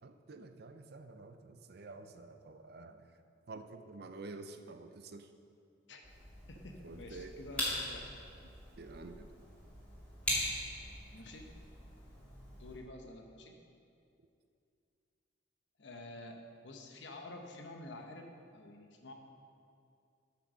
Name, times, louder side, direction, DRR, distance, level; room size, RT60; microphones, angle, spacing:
voice 1, 0.0-5.3 6.8-7.3 8.8-9.3, right 3 dB, 55° right, 8 dB, 0.5 m, -49 dB
sound 1, 6.0-12.8, equal, 5° left, 2.2 m, -41 dB
voice 2, 6.5-8.1 11.1-11.5 12.6-13.5 15.8-19.1, left 2 dB, 70° left, 3 dB, 1.0 m, -49 dB
8.1 x 6.3 x 6.1 m, 2.5 s
head